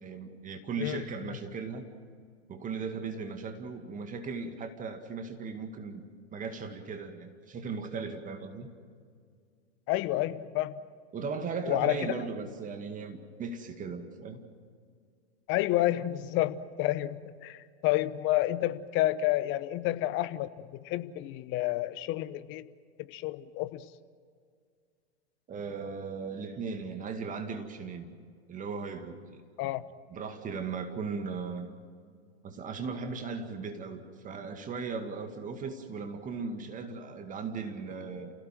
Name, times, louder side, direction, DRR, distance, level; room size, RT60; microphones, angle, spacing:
voice 1, 0.0-1.9 2.5-6.0 6.3-8.7 11.1-14.4 25.5-28.1 28.5-29.4 30.1-31.7 32.4-38.3, right 5 dB, 25° right, 2.1 m, -37 dB
voice 2, 9.9-10.8 11.7-12.1 15.5-22.7 23.0-23.9 29.6-29.8, left 15 dB, 35° left, 1.0 m, -30 dB
29.5 x 16.5 x 7.7 m
hypercardioid pair, 105°, 34 cm